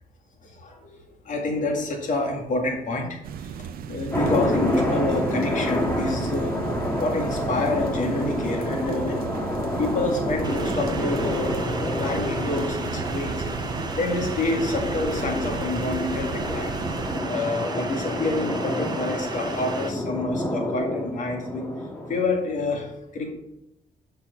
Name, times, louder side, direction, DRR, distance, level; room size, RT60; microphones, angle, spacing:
voice 1, 0.6-0.9 1.3-3.2 3.9-6.5 7.0-9.3 9.8-11.5 12.0-13.4 13.9-16.7 17.3-21.7 22.1-23.3, left 2 dB, 60° left, 1 dB, 2.0 m, -28 dB
sound 1, 3.2-17.2, right 7 dB, 75° right, 0.5 m, -35 dB
sound 2, 4.1-22.2, left 1 dB, 15° left, 1.5 m, -28 dB
sound 3, 10.4-19.9, right 4 dB, 30° right, 0.9 m, -35 dB
6.9 x 5.6 x 5.3 m, 0.84 s
cardioid pair, 120°, 15 cm